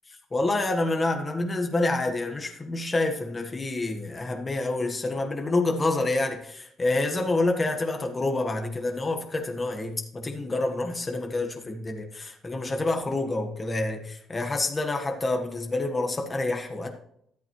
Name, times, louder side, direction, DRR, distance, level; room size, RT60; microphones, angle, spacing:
voice 1, 0.3-16.9, left 2 dB, 15° left, 3 dB, 1.5 m, -27 dB
13.5 x 13.5 x 3.2 m, 0.71 s
cardioid pair, 165°, 0 cm